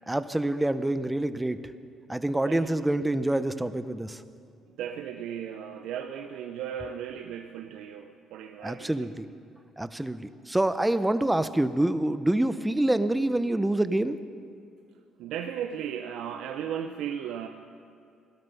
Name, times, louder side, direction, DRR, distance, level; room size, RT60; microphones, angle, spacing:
voice 1, 0.1-1.7 2.1-4.2 8.6-9.3 9.8-14.2, right 1 dB, 10° right, 12 dB, 0.8 m, -26 dB
voice 2, 4.8-9.1 15.2-17.5, right 9 dB, 75° right, 6 dB, 0.6 m, -36 dB
17.5 x 12.0 x 5.5 m, 2.5 s
hypercardioid pair, 55°, 0 cm